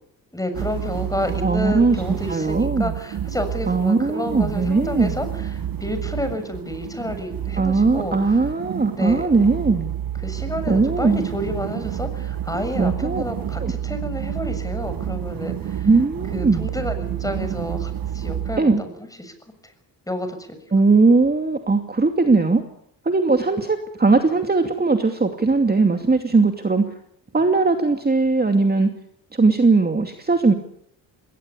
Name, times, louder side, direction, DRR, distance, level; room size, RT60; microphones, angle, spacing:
voice 1, 0.3-5.5 5.8-8.4 9.0-9.2 10.2-15.9 16.3-19.3 19.6-19.7 20.1-20.6, left 1 dB, 10° left, 9 dB, 7.1 m, -30 dB
sound 1, 0.5-18.6, right 10 dB, 55° right, 1.3 m, -29 dB
voice 2, 1.4-2.9 3.7-5.1 7.6-9.9 10.7-11.3 12.8-13.2 13.6-13.7 15.8-16.7 18.6-18.8 20.7-22.6 23.0-27.0 27.3-28.9 29.3-30.5, right 3 dB, 20° right, 5 dB, 2.6 m, -19 dB
21.0 x 18.5 x 8.6 m, 0.71 s
supercardioid pair, 65°, 42 cm